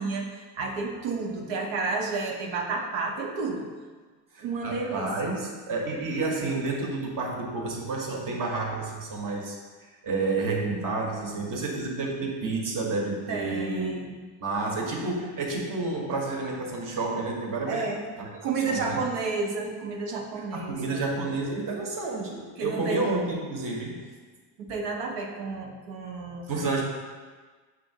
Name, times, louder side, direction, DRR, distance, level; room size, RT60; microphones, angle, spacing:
voice 1, 0.0-3.7 4.4-5.3 13.3-14.2 17.7-18.1 18.4-21.0 22.6-23.0 24.6-26.5, right 4 dB, 80° right, 1 dB, 0.8 m, -31 dB
voice 2, 4.3-14.1 14.4-17.9 18.2-18.3 18.7-19.0 20.5-24.1 26.5-26.8, right 3 dB, 50° right, 0 dB, 1.0 m, -30 dB
5.9 x 2.7 x 2.7 m, 1.4 s
supercardioid pair, 85°, 43 cm